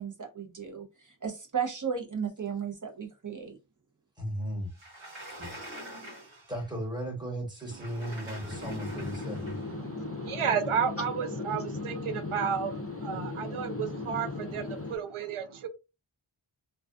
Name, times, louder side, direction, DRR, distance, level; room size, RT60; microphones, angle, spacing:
voice 1, 0.0-3.6, right 7 dB, 40° right, 0.8 m, -35 dB
voice 2, 4.2-4.7 5.4-5.7 6.5-9.6, equal, 10° right, 1.1 m, -36 dB
Sliding door, 4.7-6.7 7.6-9.8, right 1 dB, 65° right, 1.1 m, -46 dB
voice 3, 8.5-15.0, left 3 dB, 30° left, 0.5 m, -37 dB
voice 4, 10.2-12.0 12.3-12.7 13.0-14.6 14.9-15.7, right 7 dB, 80° right, 0.5 m, -31 dB
2.3 x 2.3 x 2.4 m
wide cardioid pair, 65°, 49 cm